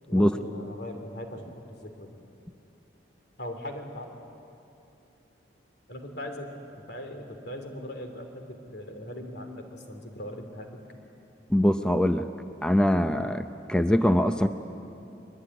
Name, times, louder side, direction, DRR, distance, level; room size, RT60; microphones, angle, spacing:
voice 1, 0.1-2.2 3.4-4.0 5.9-10.8, left 1 dB, 60° left, 4 dB, 3.1 m, -40 dB
voice 2, 11.5-12.3 12.6-14.5, equal, 5° left, 8 dB, 0.6 m, -22 dB
23.0 x 22.0 x 10.0 m, 2.8 s
head